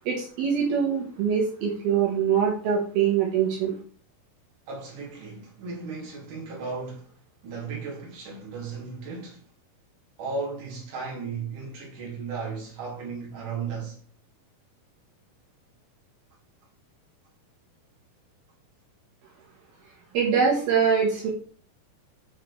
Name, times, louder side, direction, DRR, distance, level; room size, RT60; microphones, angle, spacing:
voice 1, 0.1-3.7 20.1-21.3, right 7 dB, 80° right, 3.4 m, -23 dB
voice 2, 4.7-7.1 7.4-9.4 10.2-14.0, right 4 dB, 60° right, 3.8 m, -35 dB
7.6 x 4.8 x 4.7 m
omnidirectional pair, 4.4 m